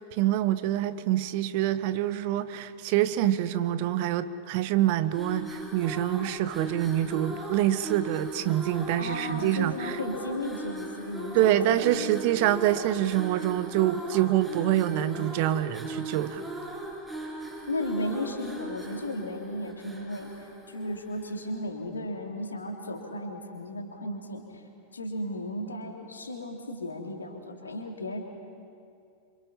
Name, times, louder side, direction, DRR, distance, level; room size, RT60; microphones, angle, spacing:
voice 1, 0.0-10.0 11.3-16.4, right 12 dB, 45° right, 14 dB, 1.1 m, -26 dB
sound 1, 5.0-21.5, right 1 dB, 10° right, 7.8 m, -39 dB
voice 2, 9.0-12.1 17.7-24.6 24.9-28.2, left 1 dB, 75° left, 2 dB, 3.2 m, -35 dB
28.0 x 26.0 x 5.7 m, 2.4 s
figure-of-eight pair, 90°, 0 cm